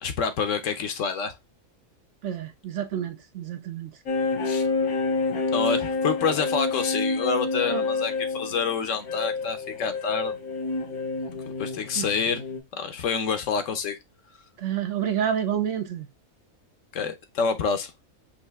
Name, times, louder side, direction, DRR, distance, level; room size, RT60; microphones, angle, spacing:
voice 1, 0.0-1.4 4.4-4.7 5.5-10.3 11.6-12.4 12.7-14.0 16.9-17.9, left 5 dB, 65° left, 1.1 m, -27 dB
voice 2, 2.2-4.0 7.7-7.9 11.9-12.1 14.6-16.1, right 9 dB, 65° right, 1.0 m, -29 dB
sound 1, 4.1-12.6, left 3 dB, 85° left, 1.5 m, -28 dB
5.5 x 2.7 x 3.4 m
omnidirectional pair, 1.5 m